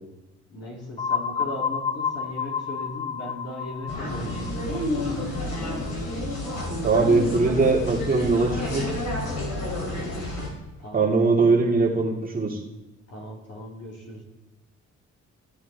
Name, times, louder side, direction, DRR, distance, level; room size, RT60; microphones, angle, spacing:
voice 1, 0.5-5.5 10.8-11.1 13.1-14.2, left 1 dB, 55° left, -1 dB, 2.7 m, -38 dB
sound 1, 1.0-6.7, left 6 dB, 20° left, 0.6 m, -31 dB
sound 2, 3.9-10.5, left 1 dB, 85° left, 3.3 m, -30 dB
voice 2, 6.8-8.9 10.9-12.6, right 3 dB, 30° right, -2 dB, 2.0 m, -21 dB
14.5 x 7.2 x 3.3 m, 1.1 s
cardioid pair, 90°, 30 cm